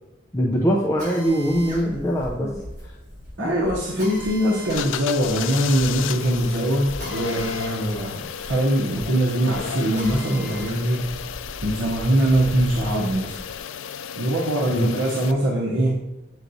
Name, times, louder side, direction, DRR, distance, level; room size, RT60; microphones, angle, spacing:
voice 1, 0.3-2.5 2.8-2.9 3.4-3.6 14.7-14.9, equal, 15° left, -1 dB, 0.5 m, -22 dB
Drill, 1.0-10.8 11.3-12.9, right 1 dB, 40° right, 2.1 m, -42 dB
sound 1, 1.3-13.6, left 1 dB, 15° right, 2.2 m, -40 dB
voice 2, 3.4-11.2 11.6-13.4 14.2-16.0, right 1 dB, 80° right, -3 dB, 0.8 m, -22 dB
sound 2, 4.7-15.3, left 8 dB, 85° left, 0.3 m, -33 dB
8.0 x 4.6 x 2.7 m, 1.0 s
head